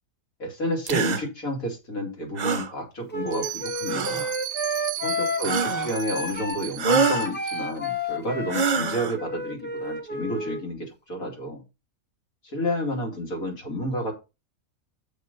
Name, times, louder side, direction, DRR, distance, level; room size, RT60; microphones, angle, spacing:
voice 1, 0.4-4.3 5.0-11.6 12.4-14.1, equal, 70° left, 1 dB, 3.1 m, -30 dB
sound 1, 0.9-1.2 2.4-2.7 3.9-4.3 5.4-6.0 6.8-7.3 8.5-9.2, right 5 dB, 45° right, 0.5 m, -25 dB
Wind instrument woodwind instrument, 3.1-10.6, left 1 dB, 10° left, 0.7 m, -31 dB
Bell, 3.3-7.9, right 13 dB, 70° right, 0.9 m, -36 dB
7.4 x 5.5 x 5.1 m, 0.27 s
omnidirectional pair, 1.5 m